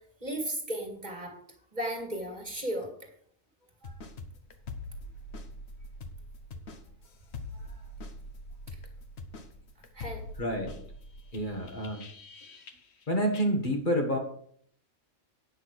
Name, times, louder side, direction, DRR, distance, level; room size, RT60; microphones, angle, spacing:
voice 1, 0.2-1.4 1.7-2.9 3.8-4.0 7.5-7.8 9.9-10.2, right 1 dB, 35° right, 2 dB, 2.2 m, -35 dB
sound 1, 3.8-13.0 13.3-13.5, left 2 dB, 60° left, 1.3 m, -44 dB
voice 2, 10.4-10.8 11.3-12.1 13.1-14.2, equal, 40° left, 1 dB, 1.6 m, -28 dB
9.6 x 6.0 x 6.3 m, 0.62 s
omnidirectional pair, 1.3 m